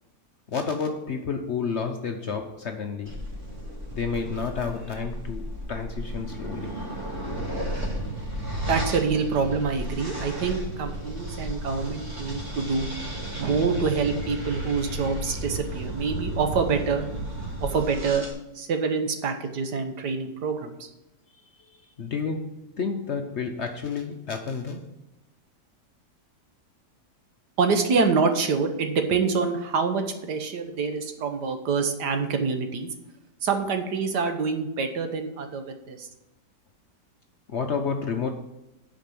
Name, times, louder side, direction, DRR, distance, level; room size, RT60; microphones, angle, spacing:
voice 1, 0.5-3.2 3.9-6.9 21.6-25.0 37.5-38.3, left 5 dB, 55° left, 5 dB, 0.8 m, -30 dB
sound 1, 3.1-18.3, right 1 dB, 45° right, 2.6 m, -33 dB
voice 2, 8.7-12.9 13.4-17.1 17.6-18.3 18.5-20.9 27.6-32.9 33.4-36.1, right 5 dB, 75° right, 6 dB, 1.7 m, -26 dB
8.8 x 5.1 x 7.6 m, 0.94 s
omnidirectional pair, 1.8 m